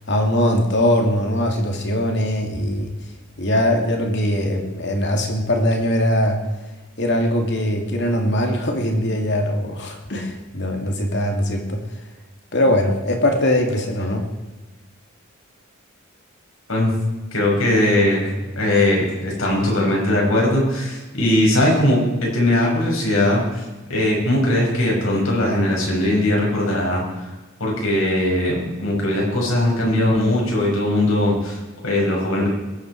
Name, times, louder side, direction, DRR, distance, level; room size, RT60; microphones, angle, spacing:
voice 1, 0.1-2.9 3.4-6.4 7.0-11.8 12.5-14.2, left 1 dB, 55° left, 3 dB, 2.6 m, -21 dB
voice 2, 17.3-23.6 23.9-27.3 27.6-32.5, left 1 dB, 75° left, -2 dB, 5.8 m, -20 dB
21.0 x 9.2 x 4.8 m, 1.2 s
head